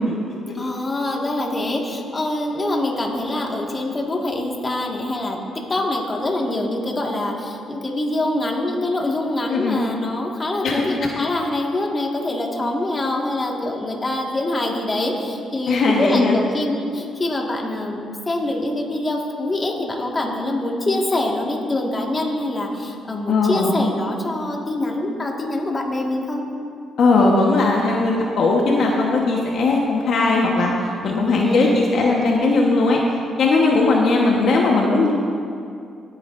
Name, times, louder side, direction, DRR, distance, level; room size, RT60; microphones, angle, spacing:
voice 1, 0.5-26.4 31.0-31.9, left 1 dB, 25° left, 0 dB, 1.7 m, -24 dB
voice 2, 9.5-9.8 10.6-10.8 15.7-16.4 23.3-23.7 27.0-30.7 31.0-33.0 33.4-35.1, left 3 dB, 65° left, -1 dB, 1.2 m, -18 dB
19.0 x 9.1 x 2.6 m, 2.5 s
cardioid pair, 90°, 0 cm